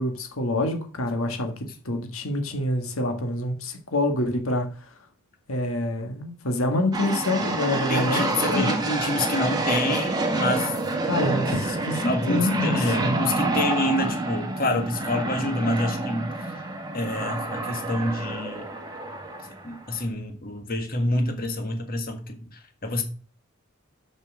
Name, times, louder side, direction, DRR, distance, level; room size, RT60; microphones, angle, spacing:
voice 1, 0.0-1.5 1.8-4.7 5.5-8.8 11.0-13.1, left 1 dB, 80° left, 1.7 m, -26 dB
sound 1, 6.9-20.0, right 2 dB, 20° right, 1.7 m, -28 dB
voice 2, 7.9-10.7 12.0-18.7 19.6-23.0, left 1 dB, 45° left, 1.7 m, -27 dB
7.3 x 6.9 x 6.4 m
head